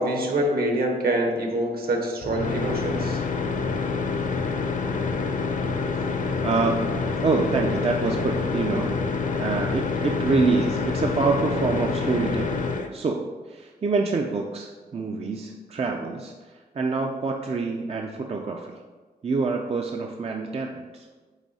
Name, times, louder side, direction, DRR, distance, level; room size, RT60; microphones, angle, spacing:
voice 1, 0.0-3.2, right 1 dB, 65° right, 2 dB, 1.3 m, -25 dB
sound 1, 2.2-12.9, left 4 dB, 50° left, 0.6 m, -27 dB
voice 2, 6.4-6.9 7.2-8.9 9.4-18.8 19.2-21.1, right 4 dB, 35° right, 2 dB, 0.5 m, -26 dB
8.2 x 4.1 x 4.1 m, 1.4 s
wide cardioid pair, 125°, 17 cm